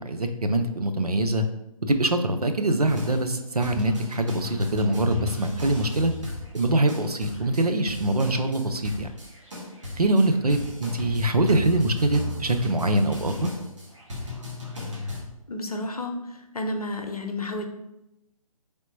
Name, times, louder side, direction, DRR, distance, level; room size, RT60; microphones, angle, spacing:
voice 1, 0.0-1.4 1.8-6.1 6.5-9.1 10.0-13.5, right 1 dB, 85° right, 7 dB, 0.5 m, -23 dB
sound 1, 2.9-15.2, left 2 dB, 55° right, 1.3 m, -36 dB
voice 2, 15.5-17.7, left 1 dB, 80° left, 5 dB, 0.6 m, -31 dB
4.0 x 3.5 x 2.7 m, 0.91 s
figure-of-eight pair, 140°, 19 cm